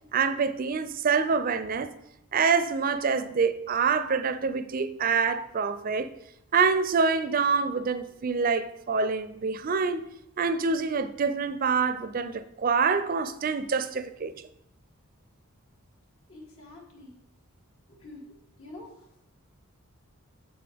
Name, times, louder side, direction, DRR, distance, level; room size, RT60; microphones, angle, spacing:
voice 1, 0.1-1.9 2.3-6.1 6.5-10.0 10.4-14.3, right 5 dB, 40° right, 0.4 m, -26 dB
voice 2, 16.3-17.2 17.9-18.3 18.6-19.3, left 2 dB, 70° left, 1.7 m, -47 dB
7.6 x 7.2 x 3.4 m
head